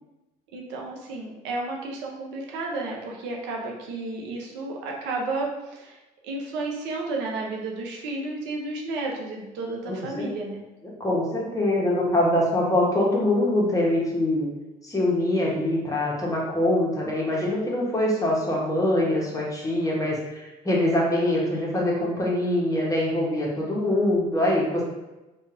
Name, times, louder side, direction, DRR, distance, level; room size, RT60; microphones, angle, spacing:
voice 1, 0.5-6.0 6.2-10.6, right 2 dB, 70° right, 0 dB, 0.5 m, -32 dB
voice 2, 9.9-10.3 11.0-14.5 14.8-24.8, left 1 dB, 15° left, -4 dB, 1.0 m, -24 dB
2.7 x 2.3 x 2.5 m, 1.0 s
hypercardioid pair, 55°, 19 cm